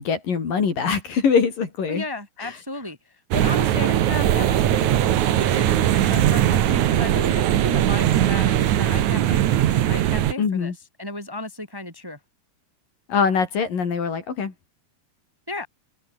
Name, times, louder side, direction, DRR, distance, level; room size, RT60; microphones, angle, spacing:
voice 1, 0.0-2.0 2.4-2.6 10.4-10.7 13.1-14.5, left 6 dB, 55° left, 5.2 m, -23 dB
voice 2, 1.9-3.0 3.3-10.7 11.0-12.2 15.5-15.7, left 2 dB, 5° right, 3.8 m, -34 dB
sound 1, 3.3-10.3, right 12 dB, 65° right, 2.1 m, -20 dB
omnidirectional pair, 4.8 m